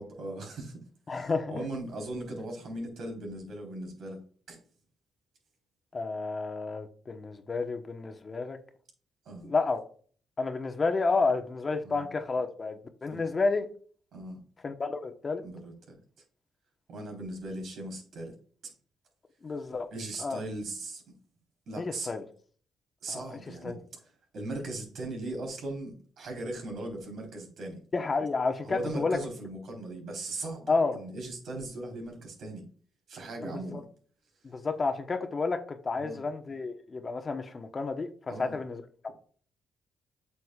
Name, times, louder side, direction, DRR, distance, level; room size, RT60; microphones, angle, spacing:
voice 1, 0.0-4.2 4.5-4.6 9.3-9.5 11.8-12.1 13.1-13.2 14.1-14.4 15.4-15.9 16.9-18.3 18.6-18.7 19.9-21.0 21.7-22.1 23.0-23.7 24.3-27.8 28.6-32.7 33.1-33.8 36.0-36.2 38.3-38.6, right 2 dB, 65° right, 4.0 m, -38 dB
voice 2, 1.1-1.6 5.9-8.6 9.4-9.8 10.4-13.7 14.6-15.4 19.4-19.9 20.2-20.4 21.8-22.2 23.1-23.8 27.9-29.2 30.7-31.0 33.4-33.8 34.4-38.1 38.4-39.1, left 3 dB, 35° left, 1.1 m, -31 dB
7.9 x 7.0 x 2.4 m
cardioid pair, 90°, 0 cm